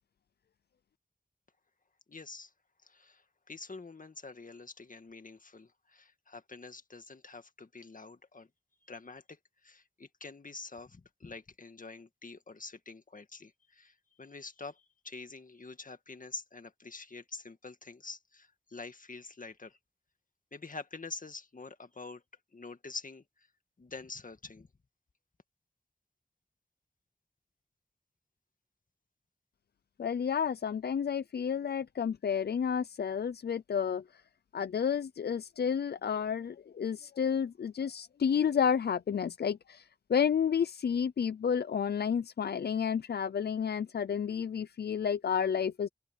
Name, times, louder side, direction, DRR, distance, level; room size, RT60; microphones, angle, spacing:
voice 1, 2.1-2.5 2.8-8.5 8.9-19.8 20.5-22.2 22.5-23.5 23.8-24.7, left 3 dB, 55° left, 1.9 m, -46 dB
voice 2, 30.0-34.0 34.5-39.8 40.1-45.9, left 7 dB, 90° left, 0.5 m, -31 dB
open air
cardioid pair, 45°, 16 cm